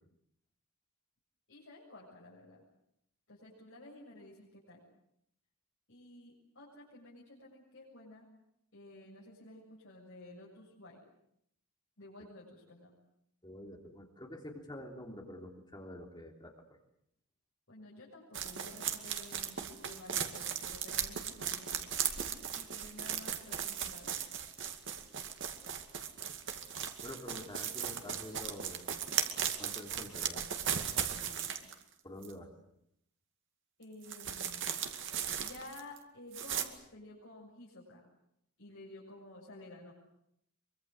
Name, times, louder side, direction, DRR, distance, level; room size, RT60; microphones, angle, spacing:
voice 1, 1.5-2.6 3.3-4.8 5.9-8.3 8.7-11.0 12.0-12.9 17.7-22.0 22.5-24.2 27.3-27.5 31.1-31.6 33.8-34.7 35.4-38.0 38.6-39.9, left 1 dB, 55° left, -5 dB, 7.3 m, -53 dB
voice 2, 13.4-16.5 27.0-28.8 29.6-30.5 32.0-32.5, left 1 dB, 20° left, 2 dB, 3.3 m, -47 dB
sound 1, 18.3-31.8 32.2-32.3 34.0-36.0 36.3-36.7, right 8 dB, 55° right, 2.3 m, -37 dB
24.5 x 24.0 x 8.0 m, 0.75 s
head